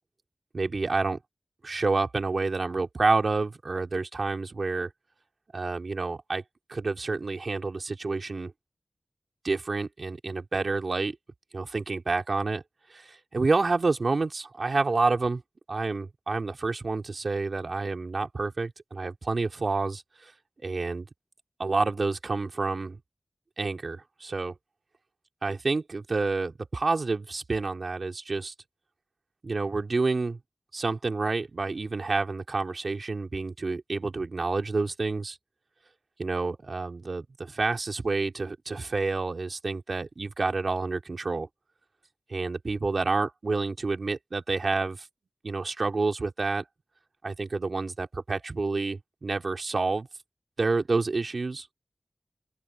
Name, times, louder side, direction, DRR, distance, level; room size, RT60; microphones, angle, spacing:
voice 1, 0.5-1.2 1.6-4.9 5.5-6.4 6.7-8.5 9.4-11.2 11.5-12.6 12.9-15.4 15.7-20.3 20.6-21.1 21.6-23.0 23.6-24.5 25.4-28.5 29.4-30.4 30.7-35.4 36.2-41.5 42.3-45.1 45.4-46.6 47.2-50.1 50.6-51.7, right 3 dB, 75° right, 3.0 m, -29 dB
open air
cardioid pair, 40°, 0 cm